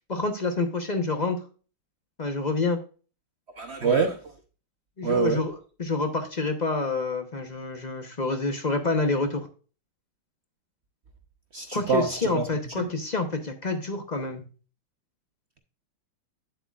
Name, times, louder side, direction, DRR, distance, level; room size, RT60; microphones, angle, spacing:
voice 1, 0.1-1.4 2.2-2.8 3.8-3.9 5.0-5.5 5.8-9.5 11.7-14.5, left 3 dB, 40° left, 0.6 m, -27 dB
voice 2, 3.5-4.4 5.0-5.4 11.5-12.5 12.8-12.9, right 5 dB, 65° right, 0.6 m, -26 dB
9.0 x 7.9 x 2.4 m
omnidirectional pair, 2.3 m